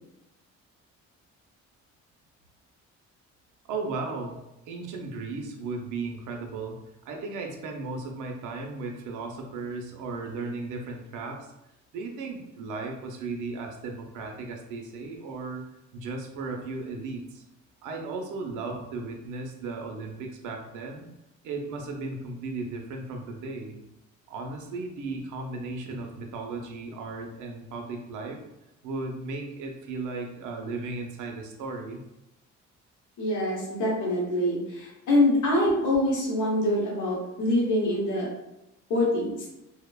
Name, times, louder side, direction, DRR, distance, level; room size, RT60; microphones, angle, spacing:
voice 1, 3.6-4.4 4.7-11.5 11.9-15.7 15.9-17.4 17.8-21.1 21.4-23.8 24.3-28.4 28.8-32.0, right 3 dB, 80° right, 2 dB, 0.5 m, -35 dB
voice 2, 33.2-38.3 38.9-39.5, left 1 dB, 75° left, -4 dB, 0.9 m, -25 dB
2.8 x 2.0 x 2.2 m, 0.89 s
cardioid pair, 90°, 30 cm